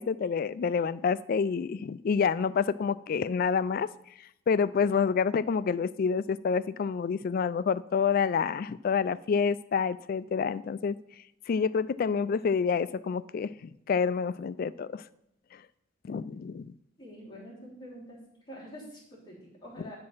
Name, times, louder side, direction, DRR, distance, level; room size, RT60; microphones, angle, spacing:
voice 1, 0.0-3.9 4.2-11.0 11.5-15.0 15.5-15.6 16.0-16.7, left 6 dB, 50° left, 17 dB, 0.3 m, -28 dB
voice 2, 17.0-18.2 18.5-20.0, equal, 20° left, -5 dB, 2.9 m, -46 dB
9.6 x 4.8 x 5.5 m, 0.79 s
head